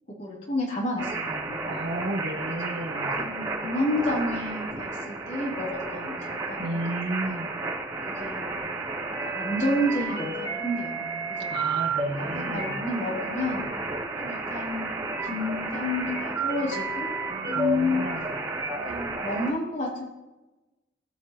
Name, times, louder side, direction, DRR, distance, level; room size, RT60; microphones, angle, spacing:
voice 1, 0.2-1.6 2.7-2.9 3.1-7.4 8.1-8.6 9.2-11.5 12.0-13.6 14.2-17.2 17.5-18.0 18.8-20.0, left 1 dB, 40° left, -4 dB, 3.0 m, -30 dB
sound 1, 1.0-19.5, right 3 dB, 25° right, 3.2 m, -32 dB
voice 2, 1.6-3.2 6.6-7.5 11.5-12.8 17.5-18.3, right 1 dB, 65° right, 2 dB, 1.5 m, -33 dB
17.5 x 5.9 x 2.9 m, 1.1 s
head